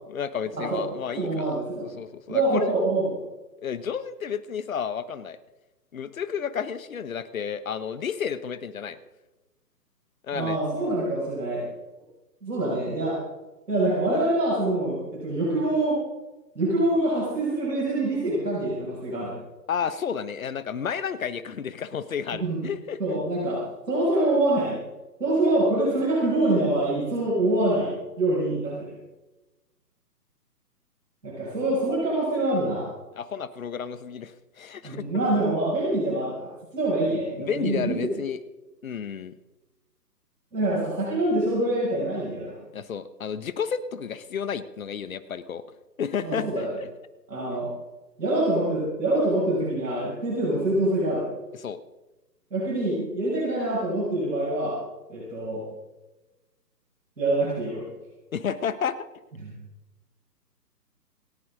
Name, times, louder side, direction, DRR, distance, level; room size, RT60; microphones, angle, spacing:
voice 1, 0.1-2.7 3.6-5.4 5.9-9.0 10.2-10.6 19.7-23.2 33.1-35.1 37.4-38.4 38.8-39.3 42.7-45.6 46.0-46.9 51.6-51.8 58.3-59.0, left 7 dB, 55° left, 15 dB, 1.2 m, -31 dB
voice 2, 1.2-1.9 2.3-3.1 10.3-11.7 12.4-13.2 13.7-16.0 16.5-19.3 22.3-22.6 23.0-23.6 23.9-24.7 25.2-28.9 31.2-32.9 34.8-38.1 40.5-42.6 46.2-46.8 47.3-47.7 48.2-51.3 52.5-54.8 55.1-55.6 57.2-57.9 59.4-59.5, right 2 dB, 75° right, -5 dB, 6.2 m, -25 dB
27.0 x 10.5 x 3.7 m, 1.1 s
figure-of-eight pair, 140°, 49 cm